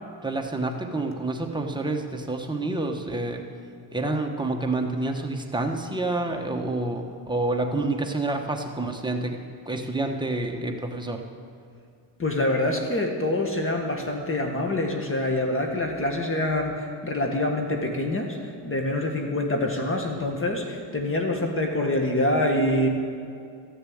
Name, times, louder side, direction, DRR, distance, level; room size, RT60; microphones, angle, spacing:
voice 1, 0.2-3.4 3.9-11.2, right 2 dB, 10° right, 2 dB, 1.2 m, -28 dB
voice 2, 12.2-18.4 18.6-22.9, left 1 dB, 25° left, 2 dB, 1.6 m, -25 dB
14.0 x 6.8 x 8.7 m, 2.3 s
cardioid pair, 110°, 47 cm